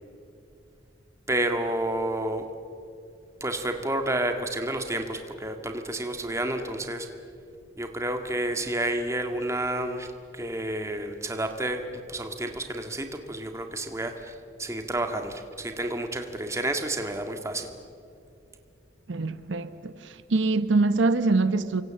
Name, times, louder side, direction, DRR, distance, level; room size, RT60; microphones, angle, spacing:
voice 1, 1.3-2.4 3.4-7.1 7.8-11.8 12.1-14.3 14.6-17.7, right 1 dB, 15° right, 1.8 m, -30 dB
voice 2, 19.1-21.8, right 3 dB, 75° right, 0.9 m, -24 dB
29.0 x 24.5 x 7.6 m
head